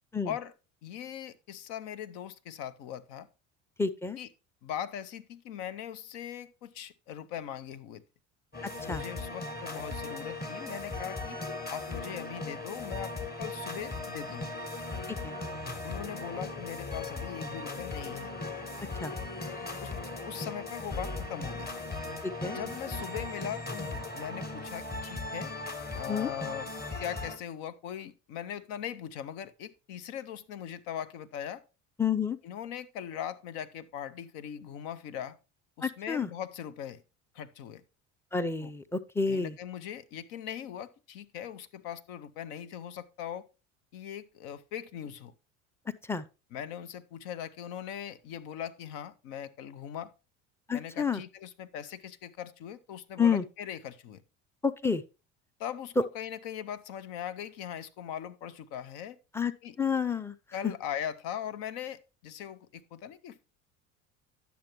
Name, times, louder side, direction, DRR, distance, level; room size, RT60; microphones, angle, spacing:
voice 1, 0.8-3.3 4.2-4.3 4.6-8.0 8.8-11.4 11.7-14.6 15.8-18.3 19.1-19.2 19.8-19.9 20.3-21.7 22.5-25.5 25.9-26.7 27.0-31.6 32.4-35.4 35.8-37.0 37.3-37.8 38.6-38.7 39.3-43.5 43.9-45.3 46.5-50.1 50.7-54.2 55.6-59.2 59.6-59.8 60.5-63.5, left 9 dB, 65° left, 0.8 m, -40 dB
voice 2, 3.8-4.2 8.6-9.0 15.1-15.4 19.0-19.1 22.2-22.6 26.1-26.3 32.0-32.4 35.8-36.3 38.3-39.6 45.9-46.2 50.7-51.2 53.2-53.4 54.6-55.0 56.0-56.1 59.3-59.5 59.8-60.4 60.6-60.7, left 5 dB, 5° left, 0.5 m, -29 dB
sound 1, 8.5-27.4, left 3 dB, 25° left, 1.4 m, -38 dB
10.0 x 7.0 x 3.1 m
hypercardioid pair, 70°, 39 cm